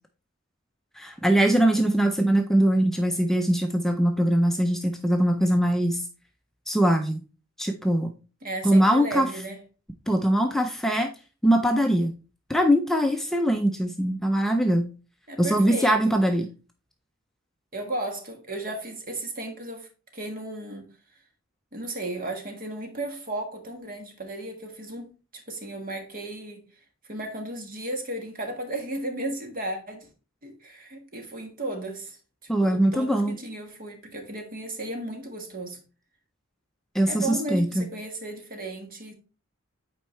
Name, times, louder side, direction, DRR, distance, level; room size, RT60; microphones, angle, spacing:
voice 1, 1.0-6.0 6.7-7.2 7.6-8.1 8.6-9.3 10.1-11.1 11.4-12.1 12.5-14.9 15.4-16.5 32.5-33.3 36.9-37.9, right 1 dB, ahead, 0.5 m, -22 dB
voice 2, 8.4-9.6 15.3-16.2 17.7-20.9 21.7-26.6 27.0-30.1 30.4-32.2 32.6-35.8 37.0-39.1, right 2 dB, 45° right, 1.5 m, -35 dB
8.4 x 4.6 x 3.2 m
head